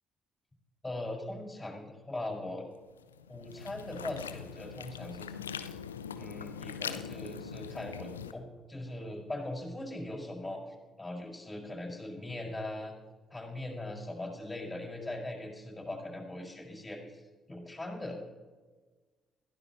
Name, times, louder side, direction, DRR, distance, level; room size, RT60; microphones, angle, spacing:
voice 1, 0.8-2.7 3.3-5.3 6.1-10.6 11.0-12.9 13.3-17.2 17.5-18.2, left 1 dB, 20° left, -1 dB, 5.5 m, -40 dB
sound 1, 2.9-8.3, left 7 dB, 80° left, 0.5 m, -42 dB
21.5 x 15.5 x 3.1 m, 1.3 s
figure-of-eight pair, 40°, 0 cm